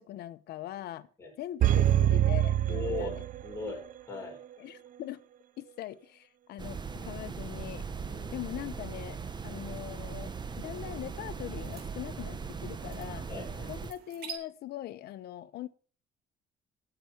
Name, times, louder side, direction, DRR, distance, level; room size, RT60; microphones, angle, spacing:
voice 1, 0.0-1.1 1.4-3.2 4.6-5.2 5.6-7.8 8.3-9.2 9.4-13.3 13.7-15.7, left 13 dB, 70° left, 11 dB, 1.0 m, -41 dB
sound 1, 1.6-3.8 4.1-4.2, right 12 dB, 55° right, 0.7 m, -25 dB
voice 2, 2.7-3.1 3.4-4.4 8.0-8.4 13.3-13.7, left 4 dB, 15° left, -1 dB, 6.1 m, -39 dB
sound 2, 6.6-13.9, right 5 dB, 25° right, 1.0 m, -39 dB
sound 3, 9.2-14.3, right 8 dB, 75° right, 3.1 m, -51 dB
19.0 x 7.1 x 4.6 m, 0.41 s
cardioid pair, 110°, 17 cm